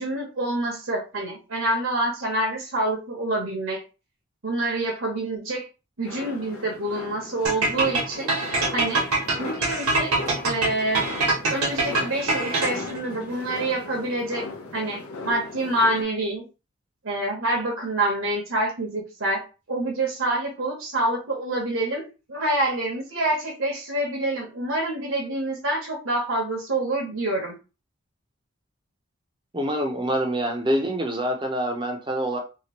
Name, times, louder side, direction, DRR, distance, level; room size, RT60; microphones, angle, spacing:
voice 1, 0.0-3.8 4.4-5.7 6.0-8.3 8.7-9.1 9.4-10.1 10.4-11.1 11.5-14.4 14.7-16.4 17.0-19.4 19.7-22.0 22.3-27.5, right 1 dB, 65° right, 0 dB, 0.9 m, -27 dB
sound 1, 6.0-16.0, left 3 dB, 90° left, 0.6 m, -38 dB
sound 2, 7.4-13.0, right 3 dB, 90° right, 1.1 m, -23 dB
voice 2, 29.5-32.4, right 1 dB, 20° right, 3 dB, 0.6 m, -26 dB
2.9 x 2.4 x 2.9 m, 0.31 s
head